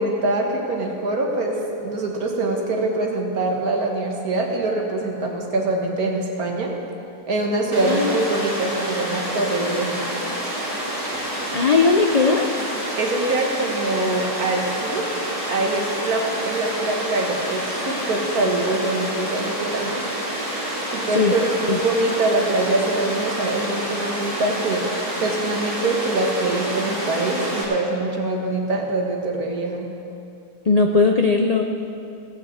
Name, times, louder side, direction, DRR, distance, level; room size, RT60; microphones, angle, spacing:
voice 1, 0.0-6.7 7.3-10.0 13.0-15.1 15.5-20.0 20.9-24.8 25.2-29.9, right 2 dB, 70° right, 0 dB, 2.1 m, -24 dB
Water, 7.7-27.6, right 1 dB, 15° right, 3.4 m, -28 dB
voice 2, 7.8-8.2 11.1-11.3 11.5-12.5 21.1-21.3 21.7-21.8 30.7-31.6, left 4 dB, 85° left, 3 dB, 0.3 m, -18 dB
17.0 x 6.5 x 7.9 m, 2.6 s
omnidirectional pair, 1.7 m